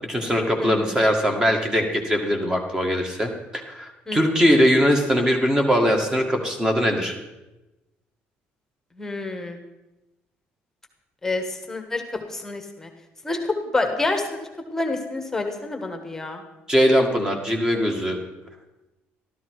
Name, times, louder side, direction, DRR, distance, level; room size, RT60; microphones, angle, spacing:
voice 1, 0.1-7.2 16.7-18.3, equal, 15° right, 3 dB, 1.9 m, -21 dB
voice 2, 0.6-1.0 4.1-4.2 9.0-9.6 11.2-12.9 13.2-13.4 13.7-16.4, left 2 dB, 10° left, 5 dB, 1.4 m, -28 dB
13.0 x 13.0 x 4.7 m, 1.0 s
cardioid pair, 145°, 4 cm